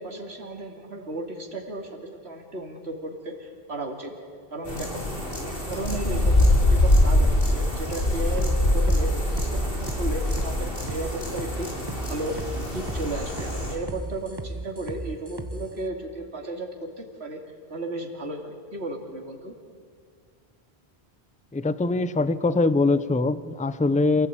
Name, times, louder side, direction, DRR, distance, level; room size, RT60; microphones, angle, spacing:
voice 1, 0.0-4.1 4.5-5.0 5.3-11.7 12.0-12.4 12.7-17.4 17.7-19.6, right 2 dB, 75° right, 2 dB, 2.9 m, -34 dB
sound 1, 4.7-13.7, left 1 dB, 55° left, 4.6 m, -24 dB
sound 2, 7.9-15.7, right 2 dB, 20° right, 1.4 m, -36 dB
voice 2, 21.5-24.3, left 3 dB, 10° left, 15 dB, 0.5 m, -22 dB
28.0 x 16.5 x 8.9 m, 2.1 s
omnidirectional pair, 1.1 m